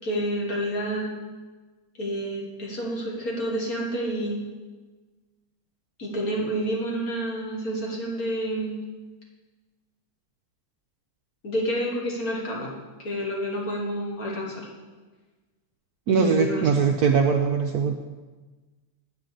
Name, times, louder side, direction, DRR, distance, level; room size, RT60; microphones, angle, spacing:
voice 1, 0.0-1.1 2.0-4.4 6.0-8.8 11.4-12.7 13.0-14.7 16.1-16.6, equal, 50° left, -2 dB, 2.0 m, -29 dB
voice 2, 16.1-18.0, right 6 dB, 70° right, 4 dB, 0.9 m, -21 dB
8.6 x 5.2 x 7.4 m, 1.3 s
omnidirectional pair, 2.1 m